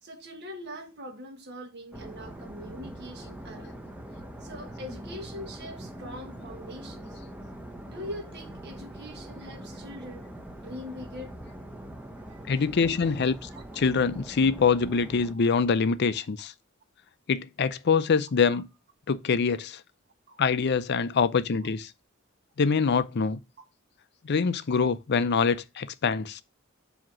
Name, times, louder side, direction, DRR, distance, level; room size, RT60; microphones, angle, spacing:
voice 1, 0.0-3.8 4.1-7.2 7.9-10.2 10.6-11.4 12.2-12.6 13.0-13.1 13.5-13.6 15.3-15.4 16.1-16.5 18.5-18.6 20.3-20.4 21.6-21.7, equal, 55° right, 1.4 m, -43 dB
sound 1, 1.9-15.4, right 1 dB, 5° right, 0.8 m, -43 dB
voice 2, 12.5-13.5 13.8-16.5 17.3-18.7 19.1-19.8 20.4-21.9 22.6-23.4 24.2-26.4, left 5 dB, 55° left, 0.5 m, -24 dB
7.5 x 2.9 x 6.0 m
head